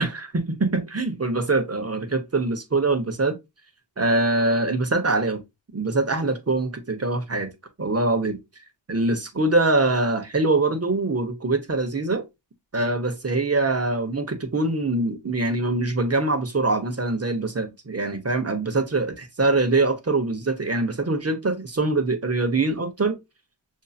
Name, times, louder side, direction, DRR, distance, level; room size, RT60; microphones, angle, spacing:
voice 1, 0.0-3.4 4.0-5.4 5.7-7.5 7.8-8.4 8.9-12.3 12.7-23.2, right 2 dB, 30° right, 1.0 m, -23 dB
6.3 x 2.8 x 2.3 m
wide cardioid pair, 85°, 48 cm